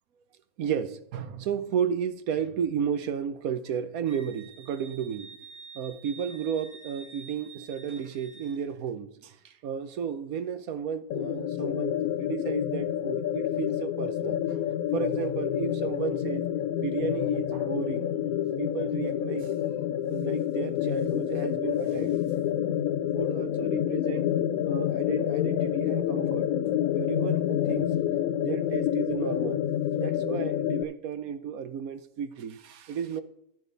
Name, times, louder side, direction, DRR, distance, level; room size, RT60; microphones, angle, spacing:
voice 1, 0.6-5.3 5.7-14.6 14.9-16.5 16.8-18.1 18.6-19.5 20.1-22.2 23.1-24.3 24.6-26.5 26.9-28.0 28.4-29.6 30.0-33.2, right 7 dB, 80° right, 1.3 m, -33 dB
Wind instrument woodwind instrument, 4.1-8.6, right 5 dB, 55° right, 2.6 m, -49 dB
sound 1, 11.1-30.8, left 11 dB, 85° left, 1.1 m, -28 dB
sound 2, 14.9-19.0, left 7 dB, 45° left, 1.1 m, -43 dB
12.0 x 9.2 x 4.0 m
omnidirectional pair, 1.5 m